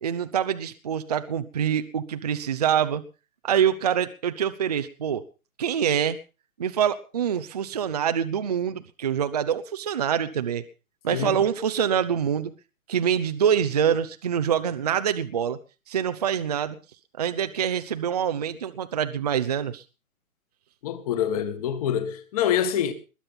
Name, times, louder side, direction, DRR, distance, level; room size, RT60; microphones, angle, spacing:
voice 1, 0.0-3.0 3.4-5.2 5.6-6.2 6.6-10.6 11.0-12.5 12.9-15.6 15.9-16.8 17.2-19.8, right 8 dB, 30° right, 0.7 m, -25 dB
voice 2, 20.8-22.9, left 9 dB, 25° left, 1.9 m, -26 dB
21.0 x 8.7 x 5.7 m
hypercardioid pair, 165°, 43 cm